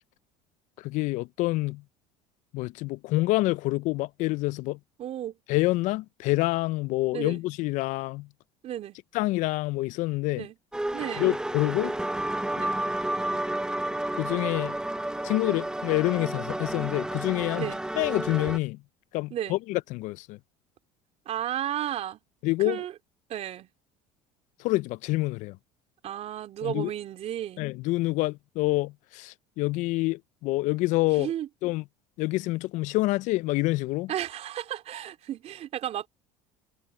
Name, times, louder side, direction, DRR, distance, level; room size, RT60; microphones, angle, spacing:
voice 1, 0.8-1.8 2.5-4.8 5.5-8.3 9.1-10.5 11.2-11.9 14.2-14.8 15.2-17.7 18.0-18.8 19.1-20.4 22.4-22.8 24.6-25.6 26.6-26.9 27.6-31.3 31.6-31.8 32.2-34.1, left 20 dB, 65° left, 0.5 m, -27 dB
voice 2, 5.0-5.4 7.1-7.4 8.6-9.0 10.4-10.6 10.9-11.3 12.6-12.7 17.5-17.8 19.3-19.6 21.3-22.2 22.6-22.9 23.3-23.7 26.0-27.6 31.2-31.5 34.1-36.1, right 11 dB, 50° right, 3.5 m, -33 dB
sound 1, 10.7-18.6, right 1 dB, 5° right, 0.7 m, -31 dB
supercardioid pair, 95°, 14 cm